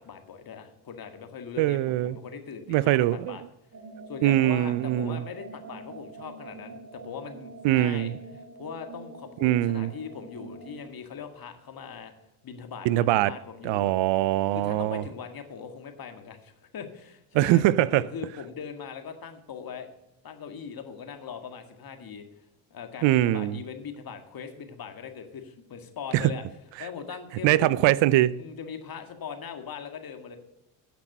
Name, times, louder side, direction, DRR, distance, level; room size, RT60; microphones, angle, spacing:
voice 1, 0.0-3.4 4.1-12.1 12.4-14.0 14.5-19.9 20.2-22.2 22.7-26.4 26.8-27.7 28.3-30.4, left 7 dB, 45° left, 1.9 m, -40 dB
voice 2, 1.6-2.1 2.7-3.4 4.2-5.2 7.6-8.1 9.4-9.9 12.8-13.3 13.6-15.0 17.3-18.0 23.0-23.6 26.1-26.3 27.4-28.3, right 15 dB, 65° right, 0.6 m, -22 dB
sound 1, 3.7-10.8, right 3 dB, 40° right, 3.5 m, -45 dB
10.5 x 6.0 x 6.7 m
supercardioid pair, 70°, 48 cm